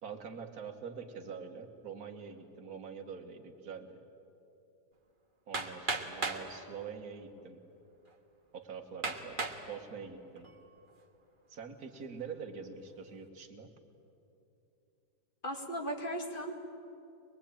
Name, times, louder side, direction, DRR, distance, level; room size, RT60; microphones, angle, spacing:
voice 1, 0.0-4.0 5.5-7.6 8.5-10.5 11.5-13.7, right 6 dB, 60° right, 4 dB, 2.0 m, -45 dB
Hammer, 5.5-6.5 7.4-7.5 8.1-8.2 9.0-9.6 10.2-10.7, right 3 dB, 30° right, 1.6 m, -35 dB
voice 2, 15.4-16.5, equal, 30° left, 2 dB, 2.2 m, -37 dB
23.5 x 21.5 x 8.8 m, 2.9 s
omnidirectional pair, 1.8 m